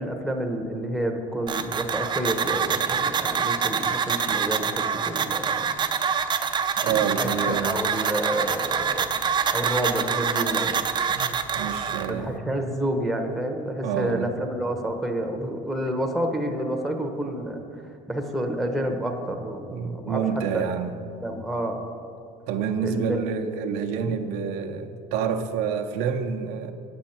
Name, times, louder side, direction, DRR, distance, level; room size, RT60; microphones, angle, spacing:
voice 1, 0.0-5.8 6.8-9.1 9.5-11.1 12.1-17.8 18.1-20.7 21.2-21.8 22.8-23.2, right 1 dB, ahead, 2 dB, 0.8 m, -29 dB
sound 1, 1.5-12.1, right 6 dB, 30° right, 0.5 m, -26 dB
voice 2, 6.8-7.8 11.1-12.5 13.8-14.3 19.7-21.0 22.5-26.7, right 7 dB, 75° right, 5 dB, 0.6 m, -28 dB
9.1 x 7.9 x 4.4 m, 2.5 s
cardioid pair, 120°, 16 cm